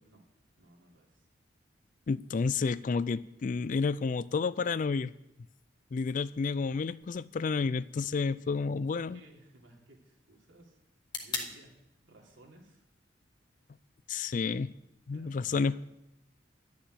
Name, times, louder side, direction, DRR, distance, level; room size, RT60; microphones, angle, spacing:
voice 1, 0.6-1.3 8.9-10.8 11.2-11.7 12.0-12.8 15.1-15.8, right 1 dB, 80° right, 3.2 m, -58 dB
voice 2, 2.1-5.1 5.9-9.2 14.1-14.7 15.1-15.8, left 4 dB, 45° left, 0.3 m, -30 dB
sound 1, 7.0-15.0, left 4 dB, 25° left, 1.5 m, -47 dB
11.5 x 7.0 x 9.2 m
head